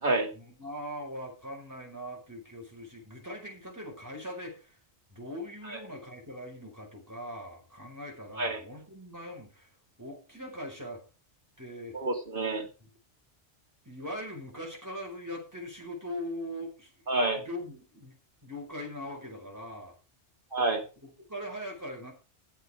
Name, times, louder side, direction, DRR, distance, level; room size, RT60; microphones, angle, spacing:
voice 1, 0.3-4.8 5.1-9.7 10.0-11.0 11.6-12.0 12.8-12.9 13.8-16.9 17.4-18.1 18.4-20.0 21.0-22.1, equal, 15° right, 0 dB, 5.2 m, -41 dB
voice 2, 11.9-12.7 17.1-17.4 20.5-20.8, right 2 dB, 50° right, 2 dB, 2.6 m, -28 dB
14.0 x 8.1 x 5.0 m, 0.33 s
omnidirectional pair, 1.2 m